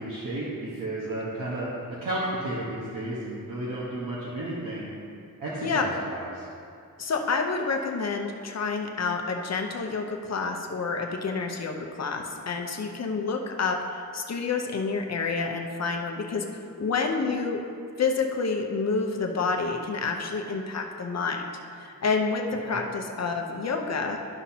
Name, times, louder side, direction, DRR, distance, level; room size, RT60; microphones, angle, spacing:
voice 1, 0.0-1.7 2.0-4.9 5.4-6.5 22.6-22.8, right 1 dB, 65° right, -7 dB, 1.3 m, -33 dB
voice 2, 7.0-16.4 16.8-17.6 18.0-21.5 21.8-24.2, left 4 dB, 50° left, 3 dB, 0.8 m, -28 dB
12.5 x 5.7 x 2.8 m, 2.4 s
wide cardioid pair, 165°, 35 cm